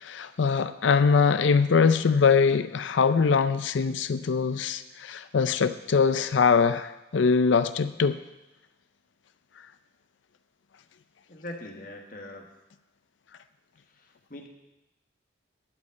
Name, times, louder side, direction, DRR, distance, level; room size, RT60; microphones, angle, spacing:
voice 1, 0.0-8.2, left 5 dB, 80° left, 12 dB, 0.5 m, -22 dB
voice 2, 11.3-12.5 13.9-14.5, left 1 dB, 45° left, 2 dB, 1.4 m, -42 dB
12.0 x 5.2 x 8.5 m, 0.97 s
head